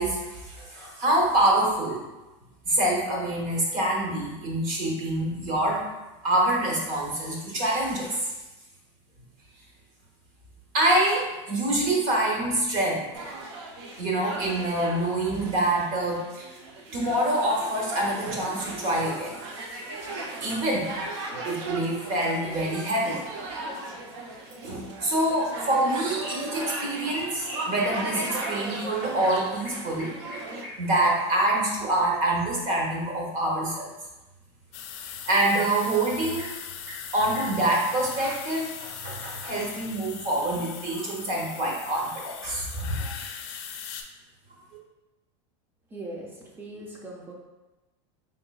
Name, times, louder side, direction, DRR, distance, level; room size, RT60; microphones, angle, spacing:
voice 1, 0.0-2.0 2.6-5.9 6.2-8.3 10.7-13.2 14.0-16.5 16.9-19.7 20.1-20.2 20.4-21.0 21.4-23.2 24.6-30.1 30.8-33.9 35.3-36.5 37.1-43.1, right 1 dB, 45° right, -2 dB, 1.1 m, -26 dB
sound 1, 13.1-30.7, right 2 dB, 65° right, 0.6 m, -37 dB
sound 2, 25.7-25.9 26.2-28.9 29.3-32.5 35.8-36.0 36.4-36.6 36.9-39.7 42.7-42.8 43.5-43.6, equal, 85° right, 1.3 m, -42 dB
sound 3, 34.7-44.0, left 8 dB, 55° left, 0.5 m, -40 dB
voice 2, 45.9-47.3, right 1 dB, 15° right, -1 dB, 0.5 m, -40 dB
4.1 x 3.7 x 2.3 m, 1.1 s
supercardioid pair, 170°, 15 cm